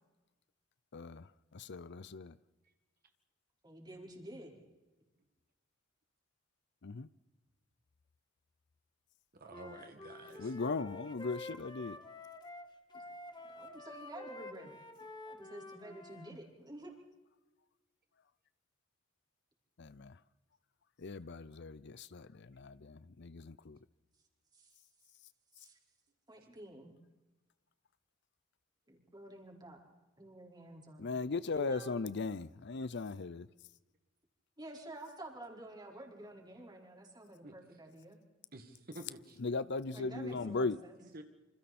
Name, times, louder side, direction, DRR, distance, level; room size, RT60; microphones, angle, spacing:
voice 1, 0.9-2.4 6.8-7.1 10.4-12.0 19.8-20.2 21.0-23.8 31.0-33.5 39.4-40.8, left 3 dB, 60° left, 0.6 m, -38 dB
voice 2, 3.6-4.6 12.9-13.0 13.5-14.8 15.3-16.9 24.5-24.7 25.6-25.8 26.3-26.9 28.9-29.8 30.2-31.9 34.6-38.2 39.9-41.0, right 1 dB, 20° right, 4.7 m, -50 dB
voice 3, 9.3-10.5 37.4-37.5 38.5-39.4 40.0-40.1 41.1-41.2, right 2 dB, 50° right, 2.0 m, -50 dB
Wind instrument woodwind instrument, 9.5-16.3, left 2 dB, 20° left, 1.8 m, -49 dB
27.5 x 26.5 x 4.3 m
head